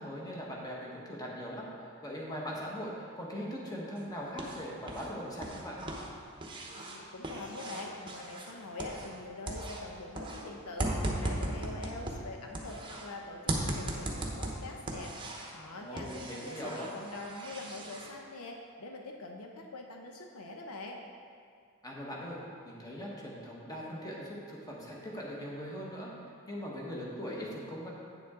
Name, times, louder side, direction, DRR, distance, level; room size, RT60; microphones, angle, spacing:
voice 1, 0.0-5.8 15.8-16.9 21.8-26.1 26.5-27.9, equal, 15° left, -3 dB, 1.3 m, -40 dB
sound 1, 4.0-5.1 5.4-9.2 9.5-13.1 13.5-15.6 16.0-18.1, right 1 dB, 20° right, 0.9 m, -37 dB
voice 2, 6.7-21.0, left 2 dB, 75° left, 2 dB, 0.7 m, -44 dB
8.9 x 7.1 x 3.7 m, 2.2 s
head